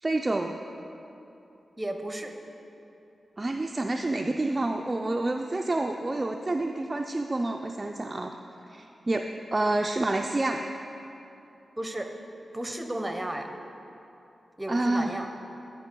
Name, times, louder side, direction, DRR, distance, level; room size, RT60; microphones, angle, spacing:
voice 1, 0.0-0.6 3.4-8.3 8.7-10.6 14.7-15.1, right 2 dB, 30° right, 3 dB, 0.3 m, -28 dB
voice 2, 1.8-2.3 11.8-12.1 12.5-13.5 14.6-15.3, right 1 dB, 15° right, 4 dB, 0.7 m, -33 dB
10.5 x 5.3 x 4.5 m, 2.9 s
cardioid pair, 75°, 0 cm